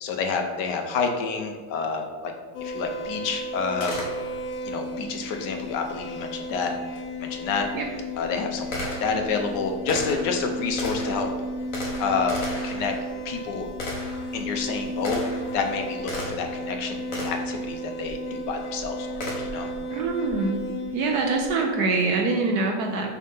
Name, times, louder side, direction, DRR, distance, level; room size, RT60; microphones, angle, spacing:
voice 1, 0.0-2.3 2.6-3.9 4.6-7.7 8.2-11.3 12.0-12.9 13.2-13.7 14.3-15.2 15.5-19.7, left 5 dB, 65° left, 4 dB, 1.2 m, -29 dB
sound 1, 2.5-21.5, equal, 90° left, 1.7 m, -34 dB
Gunshot gunfire, 3.8-4.6 6.9-7.0 7.8-16.6 17.1-17.6 19.2-19.7, left 1 dB, 45° left, 1.6 m, -35 dB
voice 2, 19.9-20.6 20.9-23.2, right 3 dB, 65° right, 2 dB, 1.1 m, -24 dB
6.6 x 3.7 x 5.3 m, 1.5 s
omnidirectional pair, 2.2 m